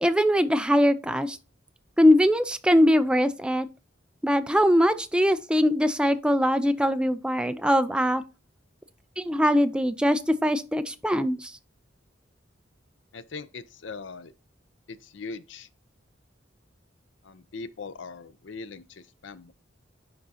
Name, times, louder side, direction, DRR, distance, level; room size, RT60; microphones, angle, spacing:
voice 1, 0.0-1.4 2.0-3.7 4.2-8.2 9.2-11.5, equal, 5° right, 0.4 m, -22 dB
voice 2, 13.1-14.3 14.9-15.7 17.2-19.5, left 4 dB, 70° left, 0.6 m, -40 dB
10.5 x 3.7 x 2.7 m
head